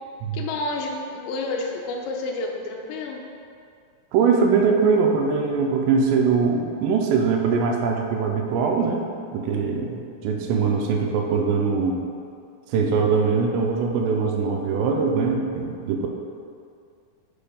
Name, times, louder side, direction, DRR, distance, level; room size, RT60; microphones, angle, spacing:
voice 1, 0.3-3.2, left 2 dB, 85° left, 0 dB, 2.9 m, -29 dB
voice 2, 4.1-9.0 9.3-12.0 12.7-16.1, right 5 dB, 85° right, 2 dB, 2.8 m, -22 dB
10.0 x 5.0 x 2.3 m, 2.3 s
omnidirectional pair, 5.0 m